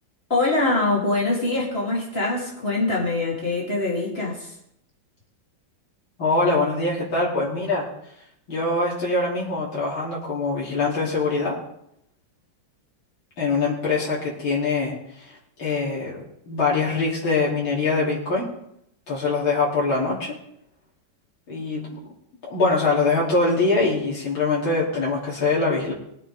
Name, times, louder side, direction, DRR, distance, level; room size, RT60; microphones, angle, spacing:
voice 1, 0.3-4.5, left 2 dB, 30° left, -4 dB, 3.6 m, -23 dB
voice 2, 6.2-7.9 8.5-11.6 13.4-15.3 15.6-18.5 19.1-20.4 21.5-21.9 22.5-25.9, left 3 dB, 85° left, -6 dB, 4.1 m, -23 dB
21.5 x 9.0 x 3.7 m, 0.75 s
omnidirectional pair, 2.1 m